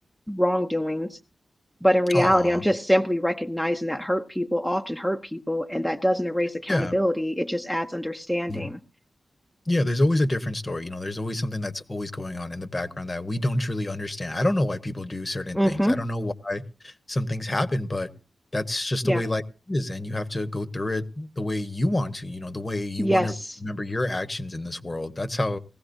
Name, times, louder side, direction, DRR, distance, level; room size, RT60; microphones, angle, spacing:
voice 1, 0.3-1.2 1.8-8.8 15.5-16.0 19.0-19.2 23.0-23.4, equal, 5° left, 4 dB, 0.7 m, -24 dB
voice 2, 2.1-2.7 6.7-7.0 8.5-8.7 9.7-18.1 18.5-23.3 23.6-25.6, left 1 dB, 30° left, 10 dB, 1.0 m, -28 dB
19.0 x 15.5 x 2.6 m, 0.34 s
wide cardioid pair, 90°, 0 cm